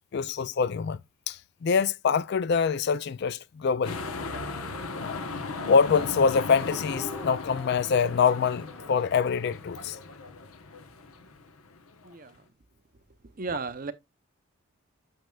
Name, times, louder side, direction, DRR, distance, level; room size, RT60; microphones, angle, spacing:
voice 1, 0.1-1.0 1.3-4.0 5.0-5.2 5.7-10.0, left 6 dB, 50° left, 0.3 m, -25 dB
sound 1, 3.8-12.3, left 3 dB, 75° left, 1.0 m, -37 dB
sound 2, 3.8-6.0 6.3-10.2 10.5-10.6 10.9-11.4, left 1 dB, 10° left, 1.0 m, -50 dB
voice 2, 12.0-12.4 13.2-13.9, right 4 dB, 40° right, 0.6 m, -35 dB
9.2 x 6.5 x 2.3 m
head